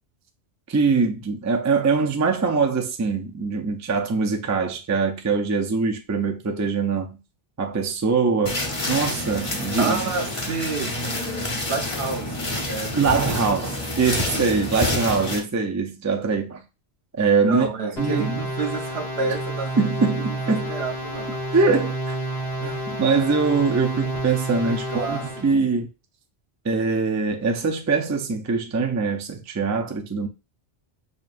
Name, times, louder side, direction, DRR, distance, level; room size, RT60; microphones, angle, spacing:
voice 1, 0.7-7.2 7.6-10.0 12.9-16.6 17.1-17.7 18.0-18.4 19.8-20.7 21.5-22.2 22.9-25.9 26.6-30.3, right 4 dB, 30° right, 0.3 m, -23 dB
sound 1, 8.5-15.4, left 2 dB, 35° left, 0.8 m, -28 dB
voice 2, 9.8-12.4 12.7-13.6 17.4-21.4 22.6-22.9 24.7-25.6, right 4 dB, 75° right, 1.0 m, -30 dB
sound 2, 18.0-25.5, right 1 dB, 80° left, 1.8 m, -30 dB
5.2 x 2.4 x 2.5 m
omnidirectional pair, 1.1 m